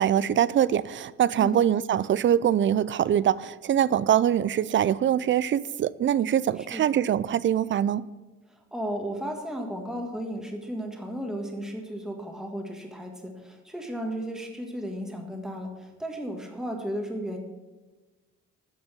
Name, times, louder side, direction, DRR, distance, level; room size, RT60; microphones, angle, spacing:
voice 1, 0.0-8.1, right 10 dB, 40° right, 0.4 m, -23 dB
voice 2, 1.3-1.7 6.6-6.8 8.5-17.4, equal, ahead, 1.7 m, -34 dB
9.2 x 6.1 x 7.5 m
cardioid pair, 90°, 30 cm